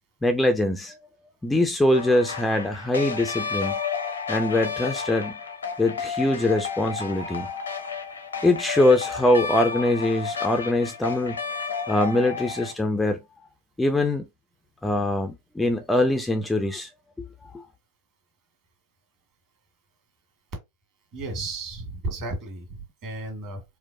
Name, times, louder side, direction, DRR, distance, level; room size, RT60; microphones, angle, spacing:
voice 1, 0.2-1.0 1.4-3.8 4.3-5.4 5.8-7.5 8.4-11.4 11.9-13.2 13.8-14.3 14.8-16.9 17.5-17.6, left 1 dB, 5° left, 0.4 m, -23 dB
sound 1, 1.9-12.7, left 6 dB, 75° left, 0.7 m, -32 dB
voice 2, 21.1-23.6, right 2 dB, 40° right, 1.7 m, -33 dB
4.4 x 2.2 x 2.6 m
figure-of-eight pair, 90°, 0 cm